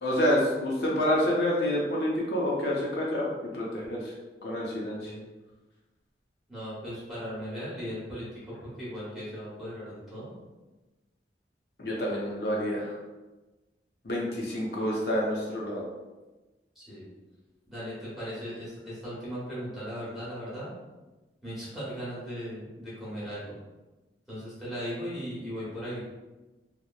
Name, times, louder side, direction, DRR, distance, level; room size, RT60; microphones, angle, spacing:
voice 1, 0.0-4.1 4.4-5.1 11.8-12.9 14.0-15.8, left 1 dB, 65° left, -3 dB, 0.6 m, -28 dB
voice 2, 6.5-10.3 16.8-17.0 17.7-20.7 21.4-23.4 24.3-26.0, equal, ahead, -11 dB, 0.9 m, -37 dB
2.9 x 2.0 x 2.3 m, 1.1 s
head